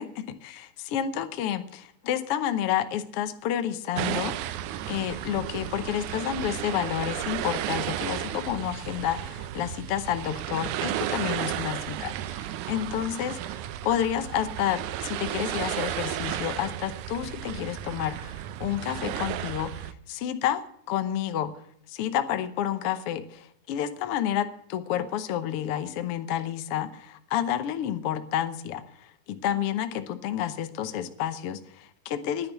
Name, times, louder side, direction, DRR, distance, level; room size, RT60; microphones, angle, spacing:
voice 1, 0.0-20.6 20.9-21.5 21.9-32.5, left 10 dB, 70° left, 9 dB, 1.4 m, -30 dB
sound 1, 4.0-19.9, right 12 dB, 75° right, 2.0 m, -33 dB
10.5 x 10.0 x 9.1 m, 0.68 s
omnidirectional pair, 3.7 m